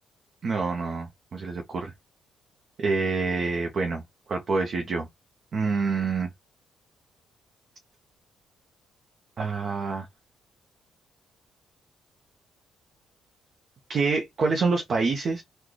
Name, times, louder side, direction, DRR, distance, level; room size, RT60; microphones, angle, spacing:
voice 1, 0.4-1.9 2.8-4.0 4.3-5.1 5.5-6.3 9.4-10.1 13.9-15.4, right 4 dB, 50° right, 0.6 m, -26 dB
3.8 x 2.2 x 3.2 m
cardioid pair, 90°, 0 cm